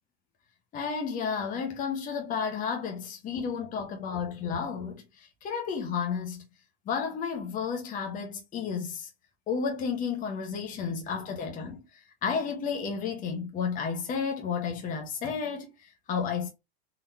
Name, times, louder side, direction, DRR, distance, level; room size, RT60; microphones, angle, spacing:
voice 1, 0.7-6.4 6.9-9.1 9.5-11.8 12.2-16.5, left 6 dB, 25° left, 1.3 m, -32 dB
4.1 x 3.0 x 4.2 m
supercardioid pair, 135°, 30 cm